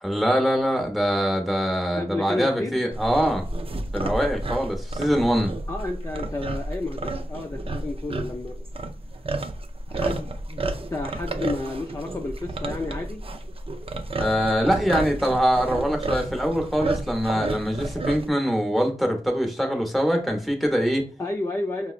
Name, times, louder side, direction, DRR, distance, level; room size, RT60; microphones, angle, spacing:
voice 1, 0.0-3.4 3.9-5.5 14.1-21.1, equal, ahead, 3 dB, 0.9 m, -23 dB
voice 2, 1.9-2.8 5.7-8.6 9.9-10.6 10.9-13.2 21.2-21.9, left 2 dB, 20° left, 1 dB, 0.5 m, -31 dB
sound 1, 2.9-18.3, right 2 dB, 40° right, 0.5 m, -31 dB
4.7 x 2.0 x 2.4 m, 0.38 s
cardioid pair, 55°, 15 cm